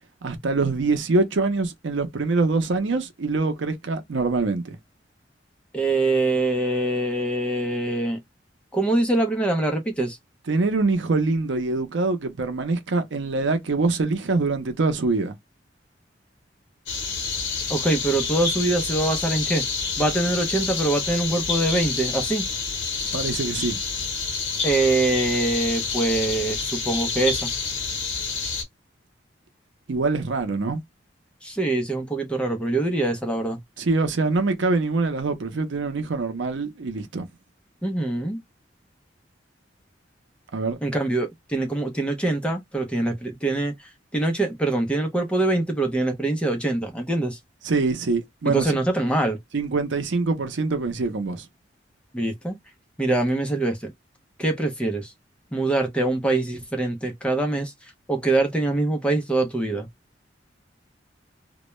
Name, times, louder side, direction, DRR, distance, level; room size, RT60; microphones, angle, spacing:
voice 1, 0.2-4.8 10.5-15.3 23.1-23.8 29.9-30.8 33.8-37.3 40.5-40.8 47.6-48.7 49.5-51.5, right 3 dB, 85° right, 0.6 m, -24 dB
voice 2, 5.7-8.2 8.7-10.2 17.7-19.7 20.0-22.5 24.6-27.5 31.4-33.6 37.8-38.4 40.8-43.7 44.1-47.4 48.4-49.4 52.1-52.6 53.0-53.9 54.4-55.1 55.5-57.7 58.1-59.9, right 2 dB, 5° left, 0.5 m, -24 dB
sound 1, 16.9-28.6, left 4 dB, 80° left, 0.8 m, -28 dB
2.2 x 2.1 x 3.0 m
head